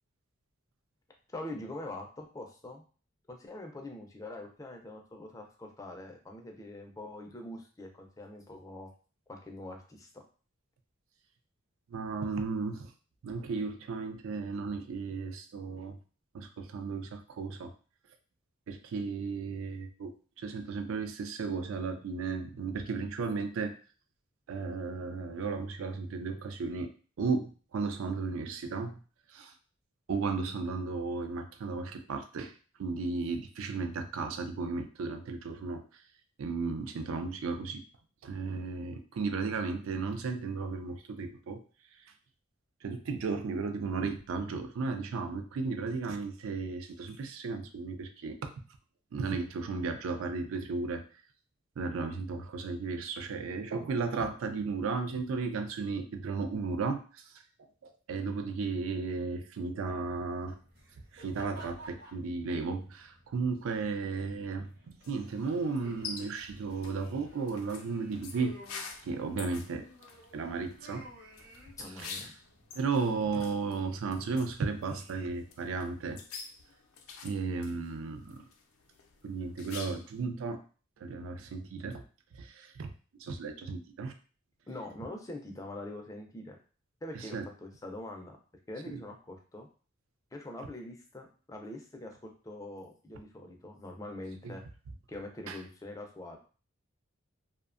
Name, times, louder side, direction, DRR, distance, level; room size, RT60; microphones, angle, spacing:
voice 1, 1.3-2.8 3.3-8.9 9.3-10.2 71.8-72.3 84.7-86.6 87.0-88.4 88.7-89.7 90.3-94.6 95.1-96.4, left 1 dB, 15° left, 2 dB, 0.3 m, -44 dB
voice 2, 11.9-12.9 13.2-16.0 16.3-17.7 18.7-20.1 20.4-23.7 24.5-26.9 27.2-29.0 29.3-29.5 30.1-32.5 32.8-35.8 36.4-37.8 38.2-41.6 42.8-48.5 49.1-51.0 51.8-57.4 57.8-60.6 61.1-68.6 69.0-69.9 70.3-71.1 72.0-72.2 72.8-76.2 77.2-78.4 79.2-80.6 81.0-82.0 82.3-82.9 83.2-84.1 87.1-87.4 88.9-89.0 94.4-94.6 95.5-95.6, right 4 dB, 80° right, 6 dB, 0.4 m, -34 dB
sound 1, 60.1-75.7, equal, 50° right, 0.8 m, -55 dB
sound 2, 65.0-80.2, left 5 dB, 90° left, 0.4 m, -48 dB
2.6 x 2.1 x 2.4 m, 0.38 s
head